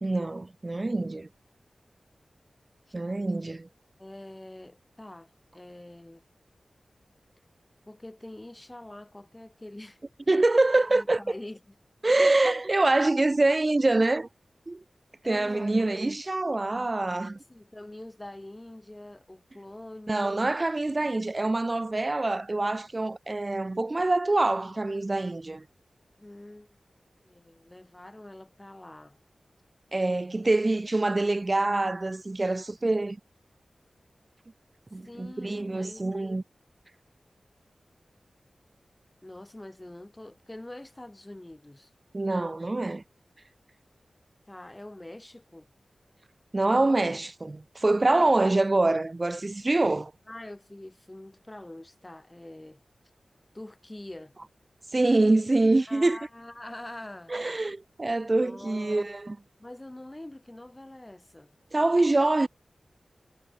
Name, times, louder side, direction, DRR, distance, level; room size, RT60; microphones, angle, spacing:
voice 1, 0.0-1.3 2.9-3.7 10.3-11.2 12.0-14.3 14.7-14.8 15.2-17.4 20.1-25.6 29.9-33.2 34.9-36.4 42.1-43.0 46.5-50.1 54.9-56.2 57.3-59.4 61.7-62.5, right 2 dB, 35° right, 0.6 m, -25 dB
voice 2, 4.0-6.2 7.9-10.0 10.9-11.7 12.2-12.6 15.2-15.8 17.3-20.5 26.2-26.7 27.2-29.2 35.0-36.2 39.2-41.9 44.5-45.7 50.3-52.8 53.5-54.4 55.9-57.3 58.3-59.1 59.6-61.5, left 1 dB, 20° left, 3.1 m, -44 dB
wide cardioid pair, 65°, 0 cm